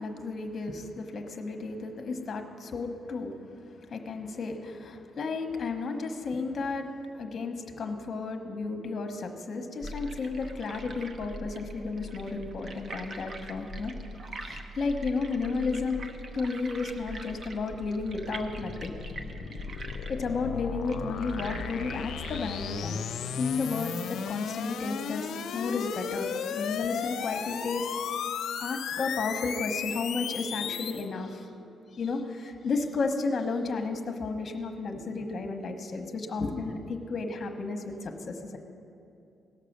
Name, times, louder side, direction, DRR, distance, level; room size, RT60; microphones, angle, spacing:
voice 1, 0.0-3.3 3.9-6.9 7.1-13.9 14.4-16.0 16.3-18.9 20.1-23.0 23.4-25.3 25.5-27.9 28.6-31.4 31.9-38.6, left 4 dB, 40° left, 5 dB, 1.1 m, -33 dB
sound 1, 9.8-22.9, right 1 dB, 40° right, 0.9 m, -42 dB
sound 2, 16.9-31.0, left 7 dB, 70° left, 0.5 m, -35 dB
17.0 x 6.6 x 6.6 m, 2.6 s
cardioid pair, 130°, 0 cm